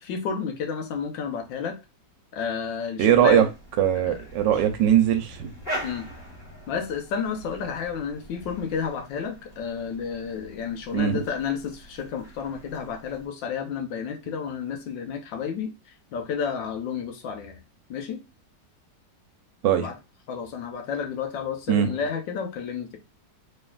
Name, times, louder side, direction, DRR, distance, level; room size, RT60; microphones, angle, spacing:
voice 1, 0.0-1.8 2.3-3.5 3.9-4.2 5.8-6.1 6.7-15.7 16.1-17.6 17.9-18.2 19.8-19.9 20.3-23.0, left 6 dB, 85° left, 1.5 m, -31 dB
sound 1, 3.0-13.3, equal, 35° left, 1.6 m, -42 dB
voice 2, 3.0-3.4 3.8-5.5 10.9-11.3 19.6-19.9 21.7-21.9, right 10 dB, 80° right, 1.3 m, -20 dB
4.3 x 3.6 x 2.3 m
omnidirectional pair, 2.0 m